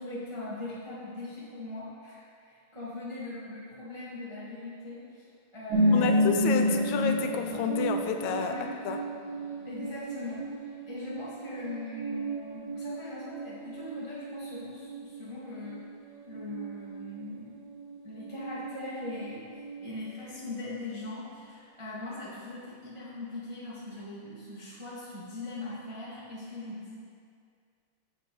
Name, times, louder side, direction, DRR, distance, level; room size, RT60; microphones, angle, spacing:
voice 1, 0.0-5.3 5.5-6.3 6.6-6.8 8.4-8.7 9.6-15.8 16.2-17.6 18.0-19.5 19.8-27.1, left 2 dB, 20° right, -9 dB, 0.7 m, -40 dB
sound 1, 5.7-19.2 19.5-20.3 20.7-20.8, equal, 70° right, 2.7 m, -32 dB
voice 2, 5.9-8.5 8.9-9.0, left 7 dB, 80° left, 5 dB, 1.8 m, -30 dB
7.5 x 7.2 x 3.9 m, 2.2 s
omnidirectional pair, 3.3 m